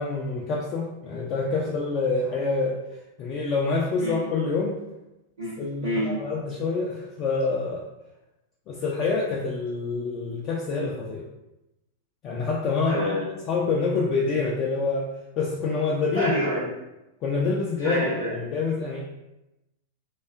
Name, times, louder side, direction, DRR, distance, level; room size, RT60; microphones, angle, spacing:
voice 1, 0.0-2.8 3.2-4.7 5.6-7.9 8.7-11.2 12.2-13.2 13.5-15.1 15.4-16.3 17.2-18.0 18.3-19.0, left 4 dB, 35° left, -4 dB, 0.3 m, -26 dB
voice 2, 5.4-6.1 12.8-13.3 16.1-16.7 17.8-18.4, equal, 70° right, -11 dB, 0.8 m, -27 dB
2.3 x 2.3 x 2.3 m, 0.94 s
figure-of-eight pair, 95°, 0 cm